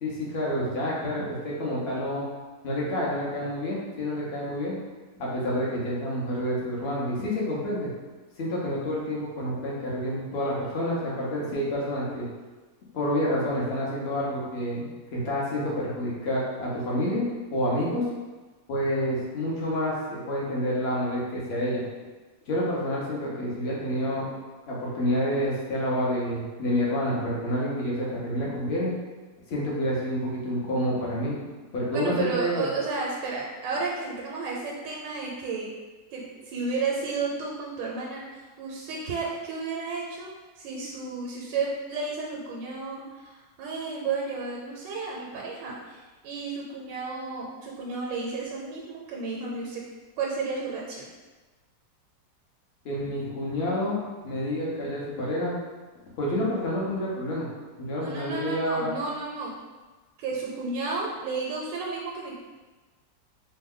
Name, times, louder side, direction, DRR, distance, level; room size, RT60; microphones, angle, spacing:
voice 1, 0.0-2.2 2.6-4.8 5.2-7.9 8.4-12.3 12.9-17.2 17.5-18.0 18.7-21.8 22.5-24.3 24.7-28.9 29.5-31.4 31.7-32.7 52.8-54.0 54.2-55.6 56.2-57.5 57.8-58.9, equal, 50° left, -5 dB, 0.7 m, -28 dB
voice 2, 31.9-35.7 36.1-49.8 50.2-51.1 58.0-59.5 60.2-62.3, right 4 dB, 80° right, -2 dB, 1.2 m, -32 dB
3.1 x 2.2 x 3.5 m, 1.3 s
omnidirectional pair, 1.9 m